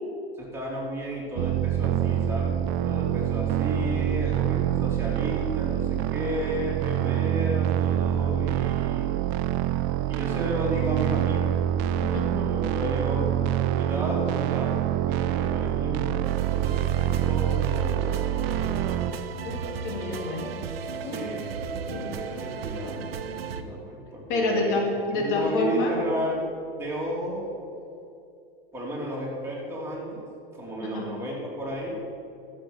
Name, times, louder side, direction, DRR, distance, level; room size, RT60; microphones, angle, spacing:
voice 1, 0.4-9.1 10.1-13.4 13.7-19.0 21.0-24.8 25.1-26.5 26.8-27.4 28.7-30.2 30.5-32.0, equal, 10° right, -5 dB, 3.3 m, -33 dB
sound 1, 1.4-19.1, right 12 dB, 35° right, 0.4 m, -26 dB
voice 2, 12.0-12.4 19.4-20.5 21.0-21.3 21.9-22.1 24.3-26.0 30.8-31.1, left 2 dB, 55° left, 1 dB, 2.0 m, -28 dB
sound 2, 16.2-23.6, right 6 dB, 75° right, 0.9 m, -35 dB
13.5 x 7.3 x 5.5 m, 2.6 s
hypercardioid pair, 105°, 30 cm